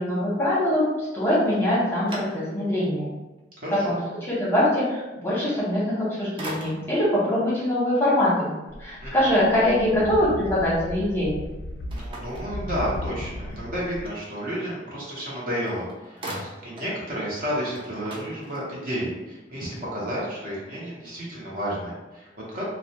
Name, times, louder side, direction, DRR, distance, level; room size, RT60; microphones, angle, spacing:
voice 1, 0.0-3.1 3.8-8.5 8.8-11.4, left 1 dB, 10° left, -8 dB, 0.8 m, -23 dB
sound 1, 1.4-2.9 3.4-3.5 5.7-6.0 6.4-7.1 11.9-13.2 15.3-15.4 15.7-17.0 17.3-17.4 17.7-19.0, right 1 dB, 30° right, 0.3 m, -40 dB
voice 2, 3.6-4.0 9.0-9.3 11.9-22.7, equal, 50° right, -6 dB, 0.8 m, -31 dB
sound 2, 8.7-14.1, left 1 dB, 65° left, 0.4 m, -36 dB
2.3 x 2.0 x 2.7 m, 1.1 s
head